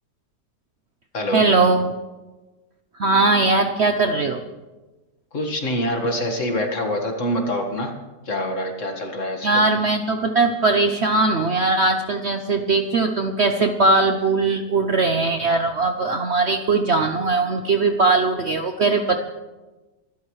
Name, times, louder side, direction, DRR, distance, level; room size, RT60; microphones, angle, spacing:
voice 1, 1.3-1.9 3.0-4.4 9.4-19.2, right 3 dB, 55° right, 6 dB, 0.8 m, -20 dB
voice 2, 5.3-7.9 8.3-9.7, equal, 50° left, 3 dB, 2.0 m, -25 dB
25.0 x 12.0 x 3.2 m, 1.2 s
omnidirectional pair, 1.8 m